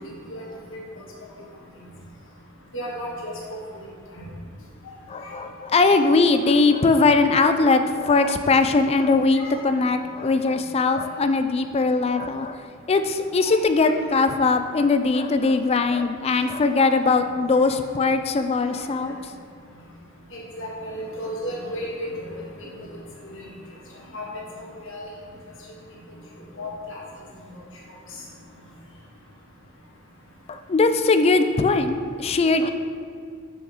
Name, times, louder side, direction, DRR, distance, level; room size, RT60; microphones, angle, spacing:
voice 1, 0.7-1.0 2.7-3.3 4.1-4.3 5.2-5.4 5.8-6.0 9.3-9.6 13.4-14.3 17.5-17.7 18.7-18.8 20.3-22.4 23.2-23.5 24.1-25.0 26.5-27.0 27.5-27.6, equal, 65° left, -4 dB, 1.6 m, -34 dB
voice 2, 5.1-12.6 12.9-19.2 30.5-32.7, left 3 dB, 30° left, 8 dB, 0.3 m, -20 dB
6.6 x 6.2 x 3.6 m, 2.2 s
head